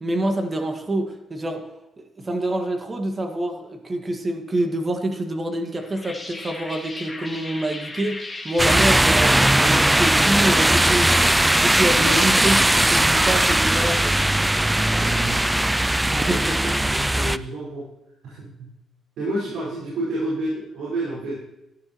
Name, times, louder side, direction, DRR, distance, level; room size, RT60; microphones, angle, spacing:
voice 1, 0.0-1.7 2.0-11.3 11.6-14.1 16.1-16.6, right 1 dB, 30° right, 4 dB, 1.8 m, -26 dB
sound 1, 5.8-16.8, left 2 dB, 15° left, 1.8 m, -35 dB
sound 2, 8.6-17.4, right 1 dB, 10° right, 0.3 m, -19 dB
voice 2, 14.9-15.4 16.1-16.3 16.7-17.9 18.2-18.7 19.2-21.4, right 1 dB, 80° right, -8 dB, 5.3 m, -30 dB
14.5 x 11.5 x 3.1 m, 0.90 s
cardioid pair, 90°, 0 cm